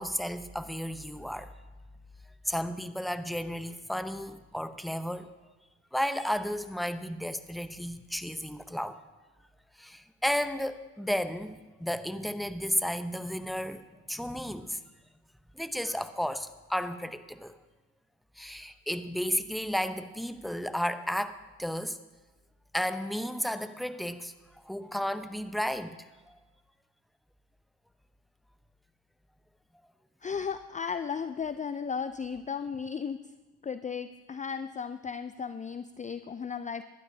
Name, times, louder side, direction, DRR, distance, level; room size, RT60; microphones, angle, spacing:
voice 1, 0.0-1.5 2.4-5.3 5.9-9.0 9.8-14.8 15.5-17.6 18.4-22.0 22.7-24.3 24.6-26.0 26.3-26.4, equal, ahead, 10 dB, 0.8 m, -33 dB
voice 2, 30.2-33.2 33.6-36.8, left 6 dB, 20° left, 11 dB, 0.5 m, -35 dB
19.5 x 11.5 x 2.8 m, 1.2 s
hypercardioid pair, 55°, 37 cm